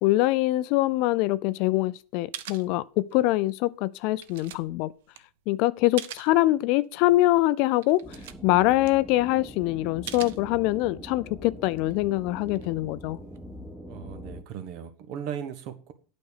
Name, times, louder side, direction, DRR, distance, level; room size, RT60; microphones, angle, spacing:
voice 1, 0.0-4.9 5.5-8.0 8.4-13.2, left 17 dB, 55° left, 0.5 m, -24 dB
sound 1, 2.0-2.1 2.3-3.4 3.7-6.4 6.8-7.0 7.4-7.5 7.7-9.5 10.1-11.0 11.5-13.7, right 11 dB, 70° right, 0.8 m, -44 dB
sound 2, 8.0-14.4, equal, ahead, 1.1 m, -43 dB
voice 2, 13.9-15.9, right 8 dB, 55° right, 1.5 m, -37 dB
8.7 x 5.3 x 6.7 m
hypercardioid pair, 110°, 0 cm